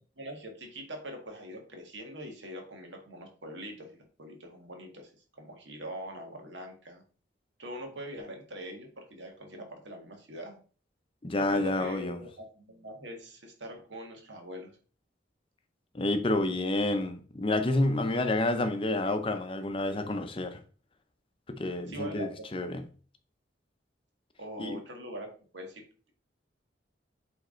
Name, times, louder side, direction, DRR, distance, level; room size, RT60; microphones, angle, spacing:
voice 1, 0.2-7.0 7.6-10.6 11.3-14.8 21.9-22.6 24.4-25.8, equal, 80° right, 1.8 m, -43 dB
voice 2, 11.2-12.2 15.9-20.6 21.5-22.8 24.6-24.8, left 2 dB, 30° left, 0.6 m, -29 dB
8.1 x 3.5 x 3.8 m
head